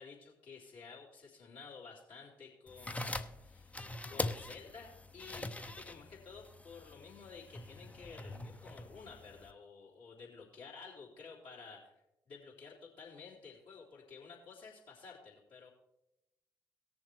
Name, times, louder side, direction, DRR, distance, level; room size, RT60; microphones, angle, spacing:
voice 1, 0.0-11.9 12.3-15.7, left 5 dB, 65° left, -5 dB, 3.5 m, -52 dB
sound 1, 2.7-9.5, left 1 dB, 15° left, 0.7 m, -43 dB
18.5 x 6.9 x 3.3 m, 0.91 s
figure-of-eight pair, 40°, 9 cm